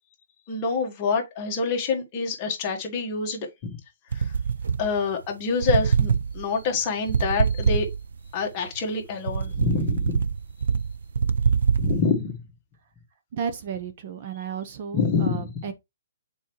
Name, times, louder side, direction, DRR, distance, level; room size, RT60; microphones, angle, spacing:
voice 1, 0.5-3.8 4.1-4.3 4.8-7.9 8.3-10.2 11.8-12.4 14.9-15.5, left 5 dB, 25° left, 1.5 m, -26 dB
sound 1, 4.1-5.3 5.6-8.3 8.8-12.0, right 6 dB, 70° right, 0.4 m, -24 dB
voice 2, 13.3-15.7, right 7 dB, 35° right, 0.8 m, -33 dB
7.1 x 4.4 x 3.1 m
hypercardioid pair, 160°, 0 cm